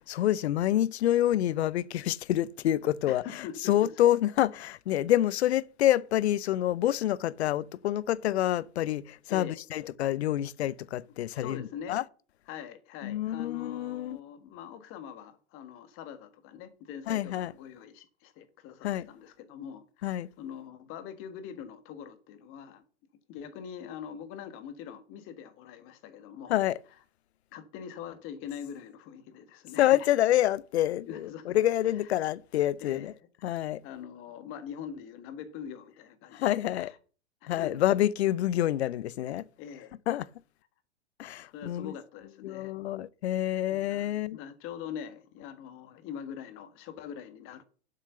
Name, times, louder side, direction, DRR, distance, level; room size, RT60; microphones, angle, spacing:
voice 1, 0.1-12.0 13.0-14.2 17.1-17.5 18.8-19.1 20.0-20.3 26.5-26.8 29.8-33.1 33.4-33.8 36.3-36.9 37.5-39.5 40.1-40.3 41.2-41.9 42.4-44.4, left 13 dB, 70° left, 0.7 m, -27 dB
voice 2, 3.1-3.9 9.3-9.6 11.4-12.0 12.5-22.8 23.3-26.5 27.5-30.1 31.1-31.6 32.8-33.2 33.8-37.0 37.4-37.8 39.6-39.9 41.5-42.7 43.7-47.6, left 8 dB, 40° left, 1.7 m, -43 dB
7.9 x 6.1 x 6.7 m
hypercardioid pair, 115°, 34 cm